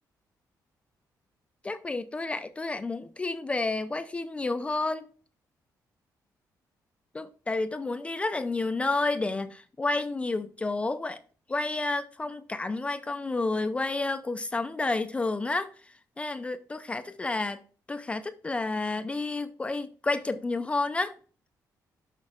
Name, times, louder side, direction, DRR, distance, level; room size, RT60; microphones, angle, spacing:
voice 1, 1.6-5.1 7.1-11.2 11.5-17.6 17.9-21.1, left 3 dB, 15° left, 0.3 m, -30 dB
6.2 x 5.7 x 3.6 m
cardioid pair, 155°, 7 cm